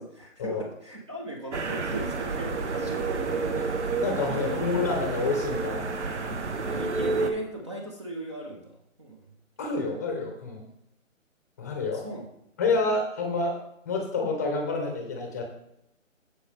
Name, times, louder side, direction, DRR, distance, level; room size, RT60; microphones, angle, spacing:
voice 1, 0.0-3.9 4.3-4.9 6.6-9.2 9.8-9.9 11.9-12.3, right 1 dB, 20° right, 0 dB, 0.8 m, -39 dB
sound 1, 1.5-7.3, right 4 dB, 60° right, 1.2 m, -30 dB
voice 2, 4.0-5.9 6.2-6.5 9.6-10.6 11.6-12.1 12.6-13.6 13.8-15.4, left 3 dB, 15° left, 2 dB, 0.9 m, -28 dB
15.0 x 4.9 x 3.4 m, 0.78 s
hypercardioid pair, 165°, 40 cm